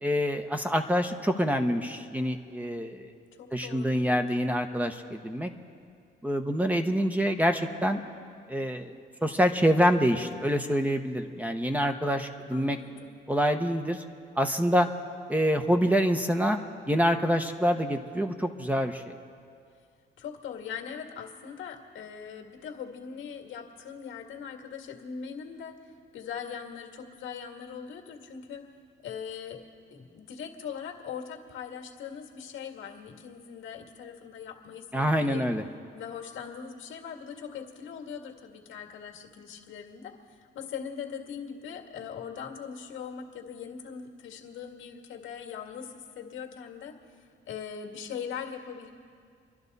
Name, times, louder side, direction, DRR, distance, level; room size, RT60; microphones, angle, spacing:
voice 1, 0.0-3.1 3.5-5.5 6.2-8.0 8.5-8.9 9.2-12.8 13.3-14.0 14.4-14.9 15.3-16.6 16.9-19.1 34.9-35.6, equal, 10° right, 5 dB, 1.0 m, -26 dB
voice 2, 3.4-4.2 12.5-13.1 20.2-28.6 29.0-29.6 29.9-35.5 35.9-47.0 47.5-48.9, left 7 dB, 80° left, 2 dB, 1.8 m, -41 dB
28.0 x 11.5 x 4.1 m, 2.2 s
cardioid pair, 90°, 20 cm